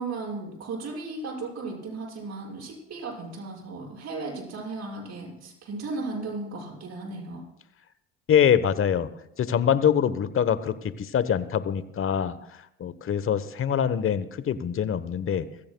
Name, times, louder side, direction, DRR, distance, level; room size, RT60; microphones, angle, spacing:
voice 1, 0.0-7.4, right 3 dB, 55° right, -2 dB, 6.4 m, -35 dB
voice 2, 8.3-9.1 9.4-12.3 12.8-15.5, left 8 dB, 40° left, 14 dB, 1.0 m, -24 dB
24.5 x 15.5 x 2.3 m, 0.82 s
hypercardioid pair, 65°, 32 cm